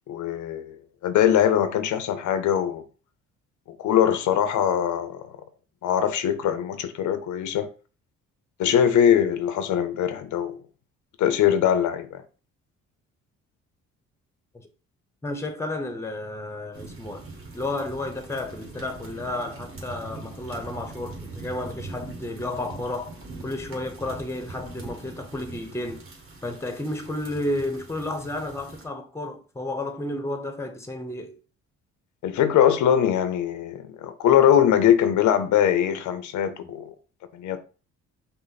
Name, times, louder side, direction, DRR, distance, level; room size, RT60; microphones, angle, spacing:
voice 1, 0.1-0.8 1.0-2.8 3.8-5.3 5.8-7.7 8.6-10.6 11.2-12.2 32.2-36.9 37.3-37.6, left 9 dB, 75° left, 0.6 m, -22 dB
voice 2, 15.2-17.3 17.5-26.0 26.4-31.4, left 1 dB, 10° left, 0.8 m, -32 dB
sound 1, 16.7-28.8, right 3 dB, 45° right, 1.8 m, -42 dB
5.3 x 2.1 x 4.0 m
cardioid pair, 90°, 30 cm